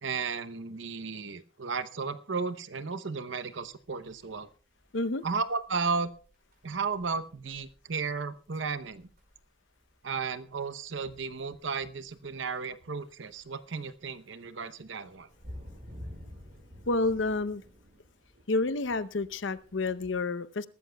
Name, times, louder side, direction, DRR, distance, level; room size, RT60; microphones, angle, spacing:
voice 1, 0.0-4.5 5.2-6.1 6.6-9.1 10.0-15.3, right 5 dB, 70° right, 0.8 m, -34 dB
sound 1, 3.7-20.0, equal, 50° right, 5.0 m, -52 dB
voice 2, 4.9-5.2 16.9-17.6 18.5-20.7, left 3 dB, 70° left, 0.7 m, -29 dB
22.0 x 13.0 x 2.3 m
head